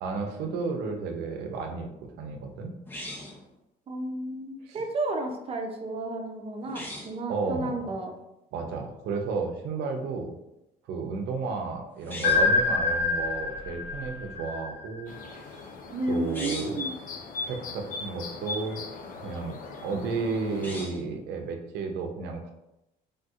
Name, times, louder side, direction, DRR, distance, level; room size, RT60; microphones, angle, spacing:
voice 1, 0.0-1.9 2.2-2.7 4.6-4.8 7.3-7.8 8.5-10.3 10.9-15.7 16.1-16.8 17.4-18.8 19.2-22.5, right 4 dB, 80° right, 3 dB, 0.6 m, -32 dB
sound 1, 2.9-3.5 6.6-7.2 12.0-12.6 16.2-16.9 20.5-21.1, left 1 dB, 10° left, 0.8 m, -39 dB
voice 2, 3.9-8.1 15.9-16.9, right 2 dB, 35° right, 4 dB, 0.5 m, -32 dB
sound 2, 12.2-15.2, left 3 dB, 80° left, 1.2 m, -26 dB
sound 3, 15.1-20.9, left 3 dB, 55° left, 0.5 m, -39 dB
3.4 x 2.6 x 2.4 m, 0.90 s
cardioid pair, 110°, 17 cm